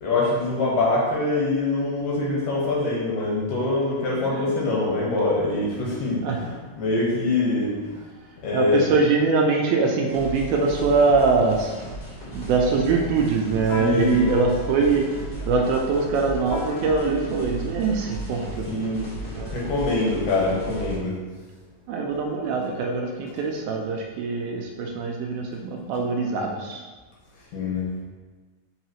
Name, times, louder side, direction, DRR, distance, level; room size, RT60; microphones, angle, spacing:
voice 1, 0.0-6.5 6.8-8.0 8.4-9.0 13.8-14.2 18.7-21.2 27.5-28.0, left 2 dB, 65° left, -5 dB, 2.4 m, -24 dB
voice 2, 4.2-4.7 6.2-6.4 8.5-11.7 12.3-15.0 15.5-18.7 19.3-19.5 21.9-26.8, right 4 dB, 80° right, 1 dB, 2.3 m, -23 dB
sound 1, 10.1-21.0, right 1 dB, 35° left, 1.6 m, -36 dB
sound 2, 11.1-11.4 11.7-12.2 12.9-17.1, left 4 dB, 90° left, 1.9 m, -38 dB
5.8 x 5.5 x 3.0 m, 1.3 s
omnidirectional pair, 4.5 m